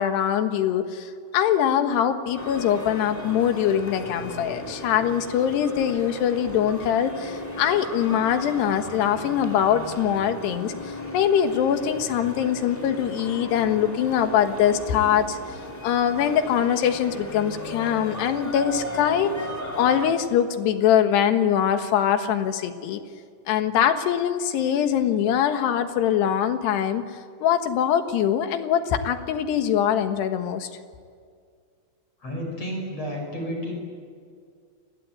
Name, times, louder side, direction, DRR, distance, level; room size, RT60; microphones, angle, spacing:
voice 1, 0.0-15.4 15.8-19.3 19.8-23.0 23.5-27.0 27.4-30.7, left 9 dB, 65° left, 7 dB, 3.1 m, -23 dB
sound 1, 2.3-20.1, left 1 dB, 5° left, 1.9 m, -36 dB
voice 2, 32.2-33.7, equal, 30° left, 1 dB, 7.0 m, -31 dB
29.5 x 20.5 x 9.3 m, 2.1 s
omnidirectional pair, 5.7 m